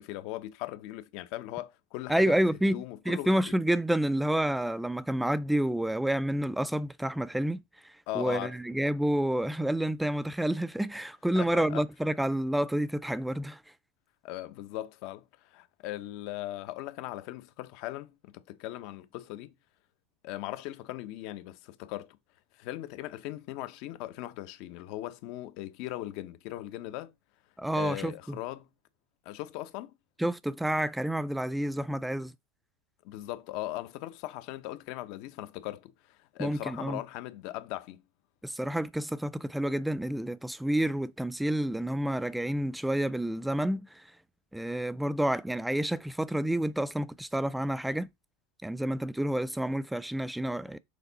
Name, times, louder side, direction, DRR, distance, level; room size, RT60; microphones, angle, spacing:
voice 1, 0.0-2.4 2.7-3.5 8.1-8.5 11.3-11.8 14.2-19.5 20.2-22.2 22.5-27.1 27.7-28.7 29.2-29.9 33.0-38.0, left 15 dB, 60° left, 0.9 m, -39 dB
voice 2, 2.1-13.6 27.6-28.4 30.2-32.3 36.4-37.0 38.4-44.1 44.5-48.1 48.6-50.8, right 1 dB, 5° right, 0.4 m, -29 dB
6.7 x 4.9 x 4.1 m
supercardioid pair, 115°, 0 cm